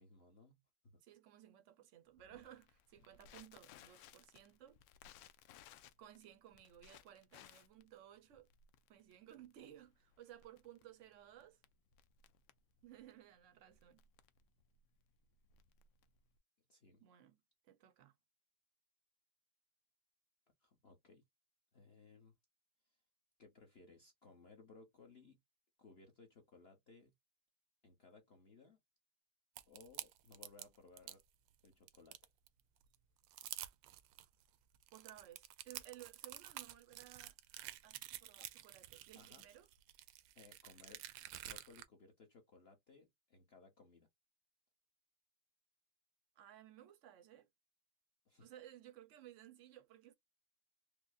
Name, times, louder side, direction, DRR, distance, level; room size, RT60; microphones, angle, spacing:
voice 1, 0.0-1.0 16.7-17.0 20.6-21.2 21.7-22.3 22.8-23.0 23.4-25.4 25.8-27.1 27.8-28.8 29.7-31.2 31.6-32.2 38.4-38.5 39.1-39.4 40.3-41.0 41.4-44.1 48.3-48.5, left 4 dB, 45° left, 0.8 m, -62 dB
voice 2, 1.0-4.8 6.0-8.5 8.9-11.6 12.8-14.1 17.0-17.4 17.6-18.2 34.9-37.4 37.8-39.7 46.4-47.5 48.4-50.1, right 12 dB, 70° right, 0.7 m, -58 dB
Crackle, 2.2-16.4, left 9 dB, 80° left, 1.3 m, -63 dB
sound 1, 29.6-31.2 31.7-32.5 32.9-33.0 33.2-34.3 34.7-41.9, right 13 dB, 90° right, 1.3 m, -50 dB
4.8 x 2.1 x 2.4 m
omnidirectional pair, 2.0 m